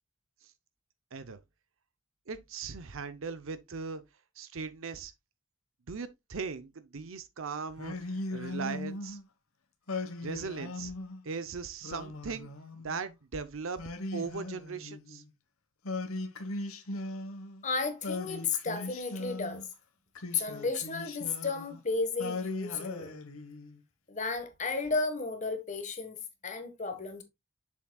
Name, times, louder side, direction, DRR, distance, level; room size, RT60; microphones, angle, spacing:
voice 1, 2.3-4.0 4.4-5.1 5.9-9.2 10.2-10.9 11.2-12.5 12.8-13.8 14.1-15.2, right 5 dB, 75° right, 0.7 m, -39 dB
Singing, 7.8-9.2 9.9-11.2 11.8-13.1 13.8-15.3 15.8-17.6 18.0-19.7 20.1-21.8 22.2-23.8, left 2 dB, 85° left, 1.3 m, -39 dB
voice 2, 17.6-19.6 20.3-23.1 24.1-27.2, left 4 dB, 35° left, 1.5 m, -33 dB
7.4 x 7.1 x 2.3 m
head